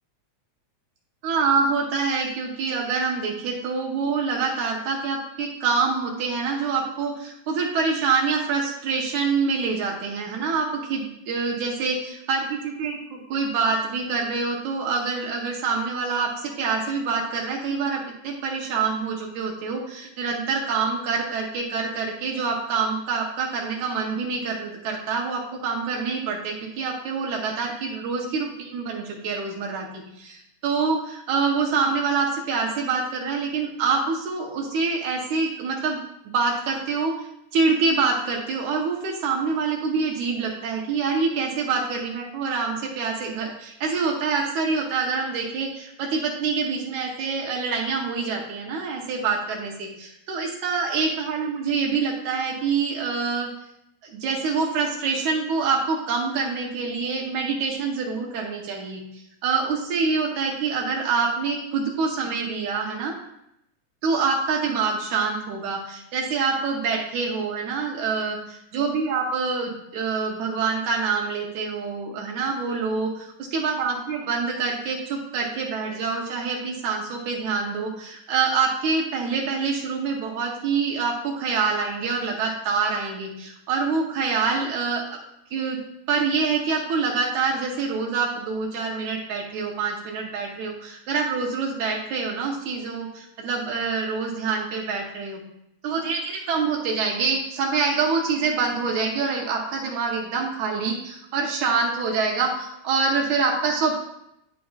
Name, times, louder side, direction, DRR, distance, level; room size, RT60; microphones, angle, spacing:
voice 1, 1.2-12.0 12.3-29.9 30.2-36.0 36.3-37.1 37.5-53.5 54.0-59.0 59.4-63.2 64.0-73.1 73.5-85.0 85.5-85.8 86.1-95.4 95.8-103.9, right 5 dB, 80° right, -1 dB, 2.3 m, -26 dB
11.0 x 4.8 x 2.4 m, 0.79 s
omnidirectional pair, 3.4 m